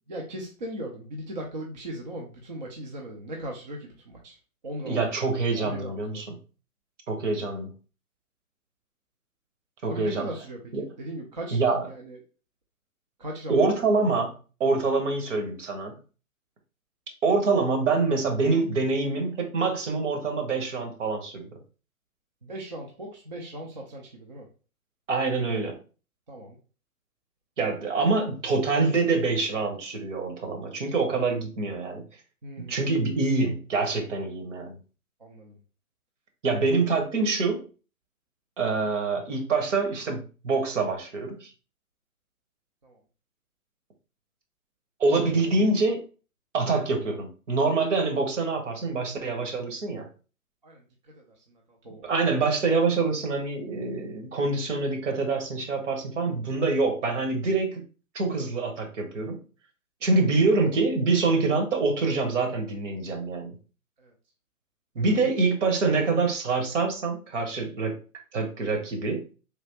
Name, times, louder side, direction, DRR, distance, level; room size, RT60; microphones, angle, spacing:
voice 1, 0.1-4.4 4.6-5.0 5.6-6.2 9.9-11.6 11.9-12.2 13.2-13.6 22.4-24.5 26.3-26.6 32.4-32.9 35.2-35.6 42.8-43.0 50.6-50.8 51.2-52.1 64.0-64.1 65.2-65.3, right 1 dB, 35° right, 0 dB, 0.4 m, -38 dB
voice 2, 4.9-6.3 7.1-7.7 9.8-10.3 10.7-10.8 11.5-11.9 13.5-14.3 14.6-16.0 17.2-21.6 25.1-25.8 27.6-32.1 32.6-34.8 36.4-37.6 38.6-41.5 45.0-46.0 46.5-50.1 52.0-57.8 58.1-59.4 60.0-63.6 64.9-68.0 68.3-69.3, right 3 dB, 55° right, 5 dB, 1.0 m, -25 dB
3.3 x 2.8 x 2.7 m, 0.36 s
hypercardioid pair, 140°, 43 cm